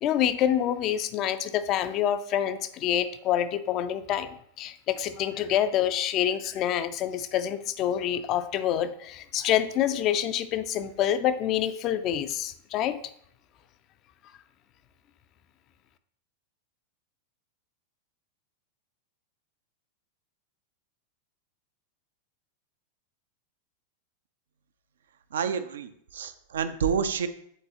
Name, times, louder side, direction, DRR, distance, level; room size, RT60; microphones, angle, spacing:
voice 1, 0.0-13.0, left 10 dB, 35° left, 11 dB, 0.4 m, -27 dB
voice 2, 25.3-27.3, right 7 dB, 65° right, 11 dB, 0.4 m, -29 dB
9.1 x 4.0 x 2.9 m, 0.68 s
figure-of-eight pair, 90°, 0 cm